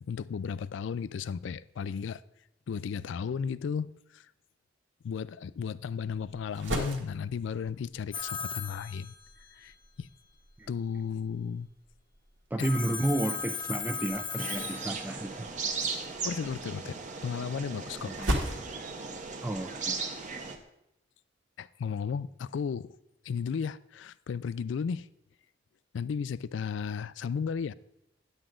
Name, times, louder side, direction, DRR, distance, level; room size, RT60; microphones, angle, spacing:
voice 1, 0.0-2.2 2.7-4.3 5.0-9.1 9.5-10.1 10.7-11.7 12.6-12.7 16.2-17.0 17.2-18.3 21.6-23.0 23.2-25.1 25.9-27.7, left 6 dB, 70° left, 0.3 m, -34 dB
sound 1, 5.8-20.6, equal, 80° right, 1.5 m, -41 dB
Telephone, 8.1-9.6 12.6-15.4, left 6 dB, 25° left, 0.8 m, -37 dB
voice 2, 12.5-15.5 18.0-18.4 19.4-20.5, right 1 dB, 10° right, 0.4 m, -32 dB
sound 2, 14.4-20.6, right 4 dB, 40° right, 0.9 m, -37 dB
10.0 x 8.0 x 3.7 m
head